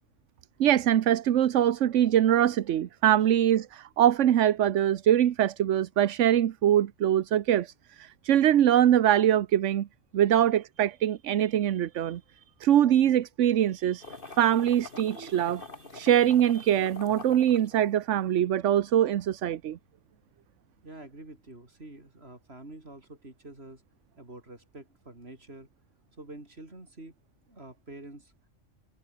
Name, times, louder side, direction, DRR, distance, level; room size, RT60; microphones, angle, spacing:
voice 1, 0.6-9.9 10.1-12.2 12.6-19.8, right 11 dB, 75° right, 1.1 m, -23 dB
sound 1, 14.0-18.4, left 3 dB, 45° left, 2.4 m, -45 dB
voice 2, 20.8-23.8 24.2-25.7 26.2-27.1 27.5-28.3, right 2 dB, 55° right, 5.1 m, -47 dB
omnidirectional pair, 1.3 m